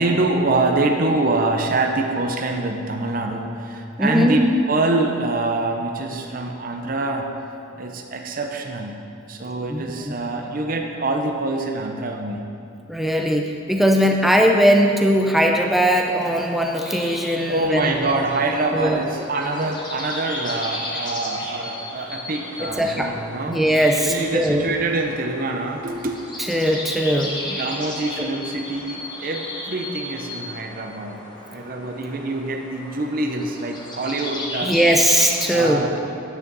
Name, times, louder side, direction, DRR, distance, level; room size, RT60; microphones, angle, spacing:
voice 1, 0.0-7.3 7.7-9.0 9.3-12.4 17.5-23.6 24.0-26.2 27.5-31.2 31.4-34.8 35.5-36.1, right 2 dB, 45° right, 3 dB, 0.6 m, -25 dB
voice 2, 4.0-4.4 9.7-10.1 12.9-17.9 18.7-19.0 22.8-23.1 23.5-24.6 26.5-27.6 28.2-28.3 34.6-35.9, equal, ahead, 2 dB, 0.6 m, -19 dB
sound 1, 16.1-35.6, left 1 dB, 20° left, 1.1 m, -35 dB
9.4 x 9.1 x 4.0 m, 2.6 s
head